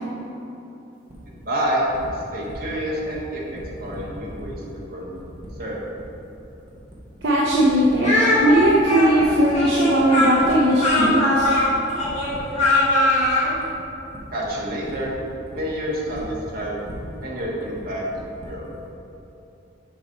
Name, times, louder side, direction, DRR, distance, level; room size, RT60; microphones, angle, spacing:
sound 1, 1.1-18.8, equal, 30° right, 1.2 m, -40 dB
voice 1, 1.4-4.6 4.9-5.1 5.6-5.8 14.3-15.2 15.5-16.8 17.2-18.0 18.4-18.7, equal, 50° right, -5 dB, 1.4 m, -28 dB
voice 2, 7.2-8.1 8.4-11.5, right 1 dB, 65° right, -5 dB, 0.8 m, -18 dB
Speech, 8.0-13.5, left 1 dB, 35° left, 1.5 m, -20 dB
7.1 x 4.0 x 5.4 m, 3.0 s
head